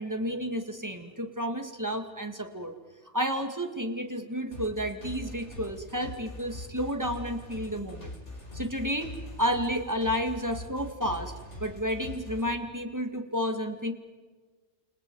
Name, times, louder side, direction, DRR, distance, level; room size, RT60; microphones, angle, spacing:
voice 1, 0.0-2.7 3.1-8.2 8.5-9.1 9.4-11.3 11.6-13.9, equal, 15° right, 5 dB, 2.2 m, -31 dB
sound 1, 4.5-12.5, left 1 dB, 75° left, 4.9 m, -42 dB
30.0 x 28.0 x 4.8 m, 1.4 s
omnidirectional pair, 1.2 m